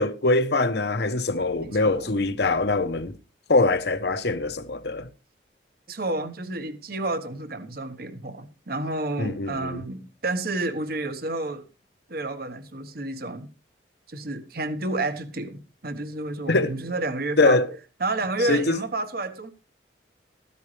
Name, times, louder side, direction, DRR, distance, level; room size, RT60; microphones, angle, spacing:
voice 1, 0.0-3.1 3.5-5.1 9.2-9.8 16.5-16.7 17.4-17.7 18.5-18.8, left 2 dB, 55° left, 1.0 m, -23 dB
voice 2, 1.6-2.1 5.9-11.6 12.1-13.5 14.1-19.5, right 2 dB, 50° right, 1.2 m, -30 dB
14.5 x 13.0 x 3.3 m
head